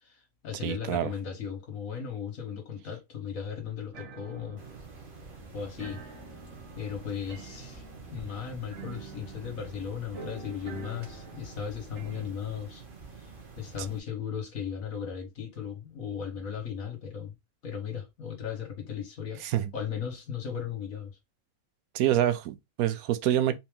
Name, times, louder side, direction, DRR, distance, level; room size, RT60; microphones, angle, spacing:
voice 1, 0.0-4.6 5.5-6.0 6.7-7.8 8.1-12.8 13.6-17.4 17.6-19.5 19.7-21.1, left 7 dB, 65° left, 1.8 m, -36 dB
voice 2, 0.6-1.1 19.4-19.7 21.9-23.6, right 12 dB, 80° right, 1.1 m, -26 dB
sound 1, 3.9-12.3, right 4 dB, 65° right, 1.5 m, -47 dB
sound 2, 4.6-14.0, right 4 dB, 40° right, 1.2 m, -48 dB
4.3 x 2.9 x 3.5 m
omnidirectional pair, 1.5 m